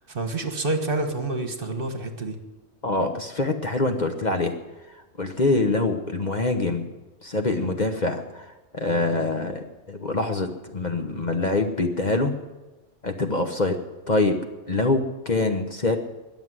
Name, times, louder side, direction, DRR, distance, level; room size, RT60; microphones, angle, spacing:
voice 1, 0.1-2.4, right 2 dB, 45° right, 6 dB, 1.5 m, -28 dB
voice 2, 2.8-4.5 5.2-6.9 7.2-8.4 8.7-12.3 13.0-13.8 14.1-14.4 14.7-16.0, left 2 dB, 35° left, 5 dB, 1.1 m, -24 dB
21.0 x 7.3 x 7.7 m, 1.1 s
omnidirectional pair, 1.3 m